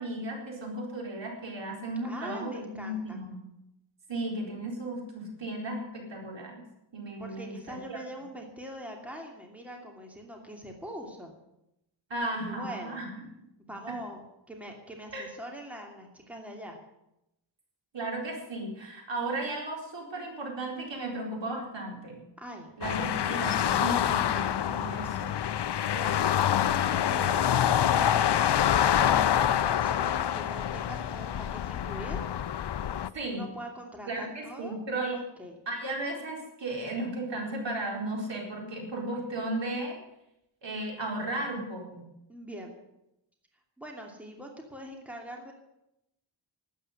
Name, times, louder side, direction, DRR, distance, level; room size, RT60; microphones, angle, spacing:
voice 1, 0.0-3.4 4.1-6.6 6.9-8.0 12.1-13.1 13.9-14.0 15.1-15.3 17.9-22.2 22.8-25.3 33.1-33.5 34.1-35.2 35.7-40.0 40.6-42.0, right 1 dB, 65° right, 0 dB, 4.4 m, -35 dB
voice 2, 2.0-3.2 7.2-11.3 12.3-13.0 13.7-16.8 22.4-22.7 25.8-26.4 26.9-32.3 33.3-34.8 35.1-35.5 42.3-42.7 43.8-45.5, equal, 5° right, 1 dB, 2.8 m, -43 dB
sound 1, 22.8-33.1, left 10 dB, 60° left, 0.6 m, -26 dB
12.5 x 9.1 x 9.8 m, 0.86 s
wide cardioid pair, 105°, 46 cm